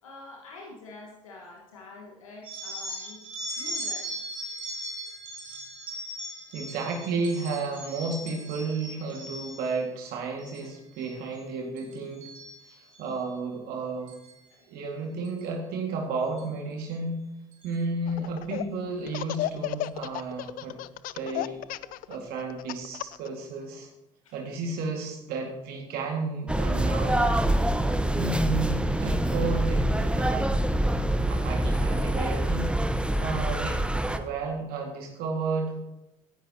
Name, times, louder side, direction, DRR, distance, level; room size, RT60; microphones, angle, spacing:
voice 1, 0.0-3.2 3.6-4.2 14.5-14.7 21.6-22.1 24.2-24.3, left 2 dB, 85° left, -1 dB, 1.5 m, -47 dB
sound 1, 2.4-9.7 10.2-10.6 10.9-11.4 11.8-13.1 14.1-14.3 15.3-15.4 16.4-16.5 16.9-17.0 17.5-17.8, right 1 dB, 90° right, 4.0 m, -39 dB
voice 2, 6.5-12.2 12.7-14.1 14.7-17.3 17.6-20.8 21.1-21.6 22.1-23.9 24.3-27.2 28.2-30.5 31.3-32.7 32.9-33.8 34.1-35.8, right 3 dB, 65° right, 1 dB, 2.1 m, -32 dB
Laughter, 18.1-18.7 19.1-23.3, left 15 dB, 55° left, 0.5 m, -33 dB
sound 2, 26.5-34.2, right 1 dB, 5° right, 1.1 m, -25 dB
18.0 x 10.5 x 2.9 m, 0.92 s
hypercardioid pair, 60°, 17 cm